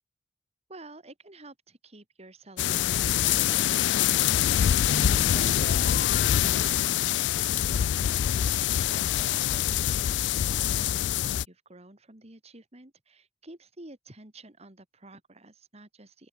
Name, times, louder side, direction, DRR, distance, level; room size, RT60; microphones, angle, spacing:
voice 1, 0.7-4.7 5.1-8.2 8.5-16.3, right 2 dB, 40° right, 3.1 m, -50 dB
sound 1, 2.6-11.5, left 11 dB, 85° left, 0.3 m, -25 dB
sound 2, 4.8-7.3, left 2 dB, 60° left, 1.1 m, -37 dB
open air
head